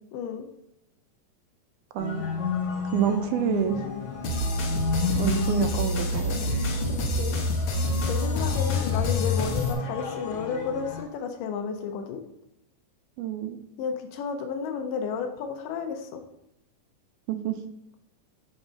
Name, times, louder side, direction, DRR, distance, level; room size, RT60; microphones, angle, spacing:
voice 1, 0.1-0.5 7.0-7.4 8.1-12.2 13.8-16.2, left 6 dB, 90° left, 5 dB, 2.3 m, -32 dB
voice 2, 1.9-2.2 2.9-3.8 5.2-6.4 13.2-13.6 17.3-17.6, right 9 dB, 80° right, 9 dB, 2.0 m, -27 dB
sound 1, 2.0-11.0, left 5 dB, 60° left, 1.5 m, -33 dB
sound 2, 4.2-9.7, left 2 dB, 75° left, 1.2 m, -27 dB
7.1 x 3.8 x 5.4 m, 0.78 s
omnidirectional pair, 3.7 m